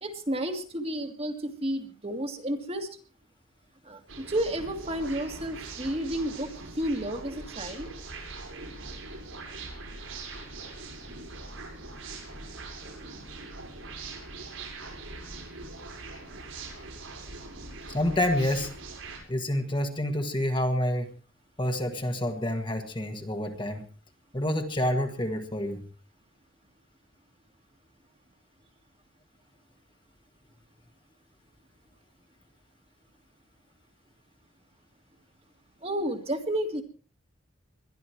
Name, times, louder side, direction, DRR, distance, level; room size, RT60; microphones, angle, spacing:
voice 1, 0.0-2.9 3.8-7.9 35.8-36.8, right 1 dB, 30° right, 5 dB, 1.9 m, -31 dB
sound 1, 4.1-19.2, right 3 dB, 80° right, 6.4 m, -42 dB
voice 2, 17.9-18.7 19.3-21.1 21.6-23.9 24.3-25.8, left 1 dB, 25° left, 5 dB, 1.6 m, -28 dB
21.5 x 12.5 x 4.6 m, 0.39 s
head